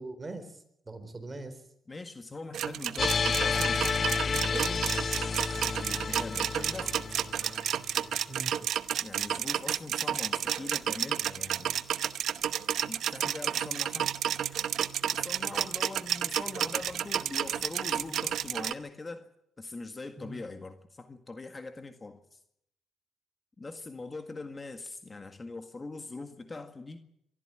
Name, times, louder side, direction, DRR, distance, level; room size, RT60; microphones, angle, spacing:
voice 1, 0.0-1.6 8.3-8.5 20.2-20.4, right 2 dB, 25° right, 9 dB, 4.1 m, -41 dB
voice 2, 1.9-4.9 5.8-7.2 9.0-11.8 12.8-14.1 15.1-19.3 19.6-22.4 23.6-27.0, left 3 dB, 25° left, 7 dB, 1.8 m, -42 dB
sound 1, 2.5-18.7, right 10 dB, 70° right, 0.9 m, -31 dB
sound 2, 3.0-8.1, left 5 dB, 45° left, 1.2 m, -31 dB
23.5 x 13.5 x 9.0 m, 0.76 s
cardioid pair, 90°, 0 cm